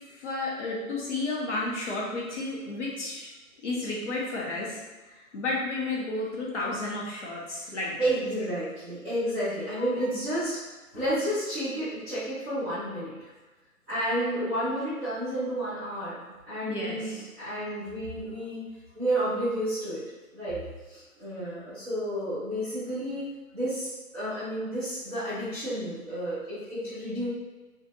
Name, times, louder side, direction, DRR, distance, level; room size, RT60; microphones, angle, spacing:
voice 1, 0.1-3.3 3.6-4.8 5.1-8.1 9.8-10.1 10.9-11.0 16.6-17.3, left 2 dB, 55° left, -4 dB, 1.2 m, -32 dB
voice 2, 8.0-10.6 10.9-13.3 13.9-18.6 18.9-20.0 20.3-20.6 20.9-23.3 23.5-27.3, right 1 dB, 5° right, -22 dB, 0.6 m, -31 dB
4.4 x 2.5 x 2.7 m, 1.2 s
hypercardioid pair, 155°, 43 cm